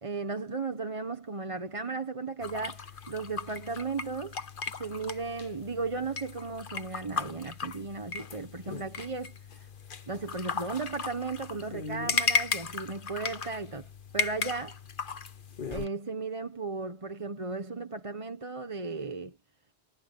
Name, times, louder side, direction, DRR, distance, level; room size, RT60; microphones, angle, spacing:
voice 1, 0.0-4.4 4.8-9.3 10.1-13.9 14.1-14.8 15.7-19.4, right 4 dB, 30° right, 1.1 m, -35 dB
sound 1, 2.4-15.9, left 5 dB, 55° left, 1.3 m, -36 dB
omnidirectional pair, 1.1 m